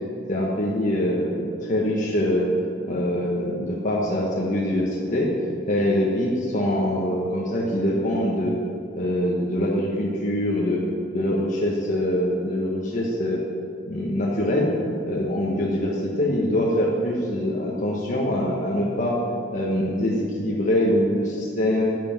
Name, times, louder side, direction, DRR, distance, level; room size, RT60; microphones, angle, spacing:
voice 1, 0.3-2.5 2.9-5.3 5.7-8.5 9.0-10.8 11.1-13.4 13.9-14.7 15.0-19.2 19.5-21.9, left 1 dB, 40° left, -4 dB, 1.4 m, -24 dB
12.5 x 7.9 x 5.9 m, 2.5 s
head